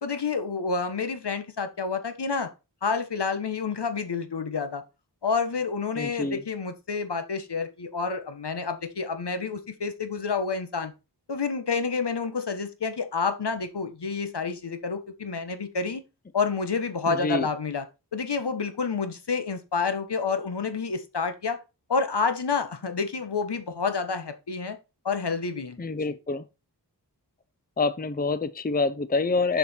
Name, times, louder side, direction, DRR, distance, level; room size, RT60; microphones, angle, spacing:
voice 1, 0.0-2.5 2.8-4.8 5.2-10.9 11.3-16.0 16.3-17.8 18.1-21.6 21.9-24.8 25.0-25.8 26.1-26.2, left 5 dB, 70° left, 1.3 m, -29 dB
voice 2, 6.0-6.4 17.1-17.5 25.8-26.5 27.8-29.6, left 3 dB, 20° left, 0.6 m, -26 dB
7.0 x 6.0 x 4.4 m
wide cardioid pair, 50°, 42 cm